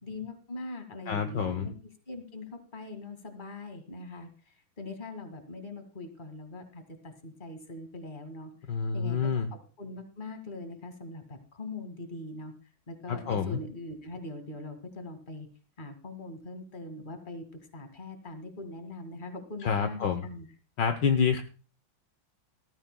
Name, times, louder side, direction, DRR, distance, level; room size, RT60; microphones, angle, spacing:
voice 1, 0.0-4.3 4.8-8.5 8.9-12.5 12.9-15.5 15.8-17.4 17.7-20.5, left 2 dB, 25° left, 6 dB, 2.1 m, -42 dB
voice 2, 1.1-1.7 8.7-9.5 13.1-13.6 19.6-20.3 20.8-21.4, left 6 dB, 65° left, 8 dB, 1.5 m, -28 dB
19.0 x 14.0 x 2.2 m, 0.37 s
omnidirectional pair, 2.2 m